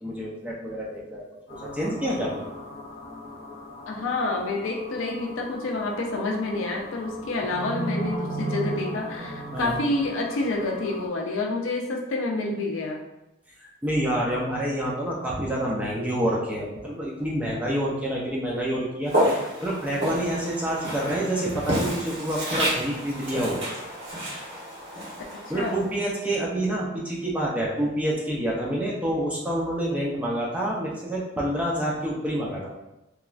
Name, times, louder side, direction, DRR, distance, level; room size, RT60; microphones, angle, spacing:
voice 1, 0.0-2.4 9.5-9.8 13.6-19.1 19.6-23.6 25.5-32.7, right 1 dB, 5° right, -5 dB, 0.4 m, -28 dB
sound 1, 1.5-11.1, right 1 dB, 45° left, 1.0 m, -36 dB
voice 2, 3.9-13.0 25.3-25.8, left 2 dB, 70° left, 0 dB, 0.4 m, -28 dB
Walk footsteps, 19.0-26.2, equal, 60° right, 1.2 m, -30 dB
3.0 x 2.3 x 2.4 m, 0.93 s
head